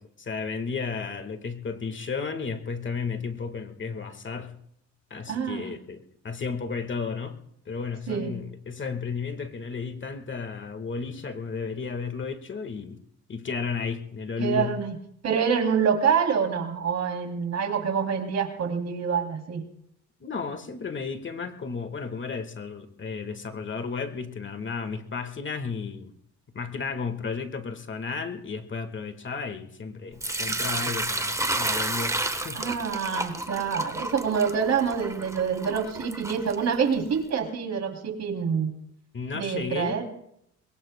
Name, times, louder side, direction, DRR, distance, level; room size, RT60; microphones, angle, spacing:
voice 1, 0.0-4.6 5.1-13.0 13.3-14.7 20.2-26.1 26.5-32.2 32.4-32.6 39.1-40.0, left 5 dB, 40° left, 8 dB, 1.6 m, -33 dB
voice 2, 5.3-5.6 8.1-8.3 14.4-15.0 15.2-19.6 32.5-38.7 39.3-40.0, right 6 dB, 60° right, 4 dB, 3.0 m, -26 dB
Sink (filling or washing) / Liquid, 30.2-37.1, right 2 dB, 10° right, 1.1 m, -31 dB
22.5 x 22.5 x 2.2 m, 0.73 s
cardioid pair, 90°, 30 cm